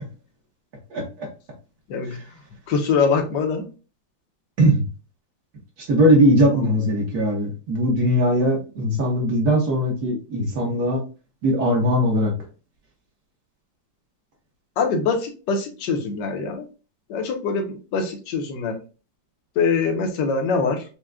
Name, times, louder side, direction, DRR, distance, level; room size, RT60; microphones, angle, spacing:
voice 1, 2.7-3.7 14.8-16.6 17.1-18.8 19.6-20.8, left 5 dB, 70° left, 4 dB, 1.4 m, -23 dB
voice 2, 5.9-11.0 11.4-12.3, equal, 60° right, -1 dB, 1.5 m, -19 dB
6.1 x 2.3 x 2.2 m, 0.34 s
omnidirectional pair, 2.1 m